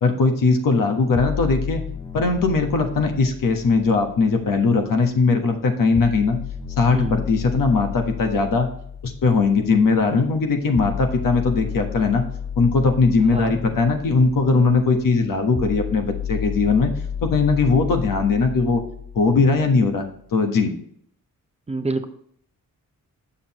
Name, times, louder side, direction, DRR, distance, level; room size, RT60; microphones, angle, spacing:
voice 1, 0.0-1.8 2.1-6.4 6.8-8.7 9.0-12.2 12.6-16.9 17.2-18.8 19.1-20.0 20.3-20.7, left 4 dB, 80° left, 4 dB, 1.4 m, -19 dB
sound 1, 1.2-5.2 6.0-20.0, left 7 dB, 15° left, 0.5 m, -32 dB
voice 2, 13.3-13.6 21.7-22.1, right 2 dB, 20° right, 6 dB, 0.7 m, -26 dB
7.7 x 6.5 x 3.0 m, 0.66 s
wide cardioid pair, 115°, 33 cm